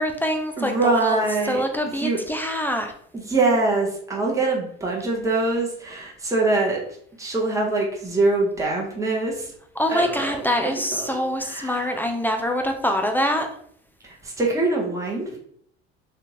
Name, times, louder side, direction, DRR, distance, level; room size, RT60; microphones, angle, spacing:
voice 1, 0.0-1.2 1.5-2.9 9.8-13.5, equal, 5° left, 4 dB, 0.3 m, -24 dB
voice 2, 0.6-1.6 2.0-2.2 3.1-6.8 7.2-9.5 9.9-11.2 11.5-12.0 14.0-15.4, right 2 dB, 10° right, -2 dB, 0.8 m, -24 dB
2.8 x 2.2 x 2.8 m, 0.66 s
hypercardioid pair, 65°, 32 cm